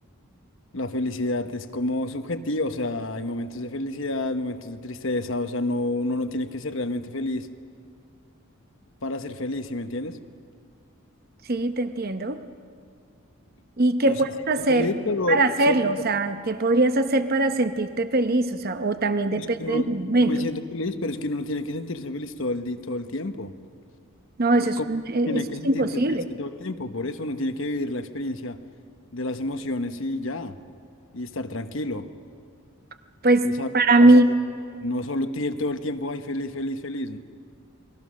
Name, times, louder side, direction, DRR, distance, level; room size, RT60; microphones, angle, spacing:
voice 1, 0.7-7.5 9.0-10.2 14.0-14.2 14.6-15.8 19.0-23.5 24.6-24.8 25.3-28.6 29.1-30.5 31.1-32.0 33.4-33.7 34.0-34.2 34.8-37.2, left 2 dB, 60° left, 9 dB, 1.1 m, -29 dB
voice 2, 11.5-12.4 13.8-14.9 15.3-20.4 24.4-26.2 33.2-33.5 33.7-34.2, right 2 dB, 45° right, 9 dB, 0.8 m, -21 dB
28.5 x 21.5 x 6.3 m, 2.2 s
head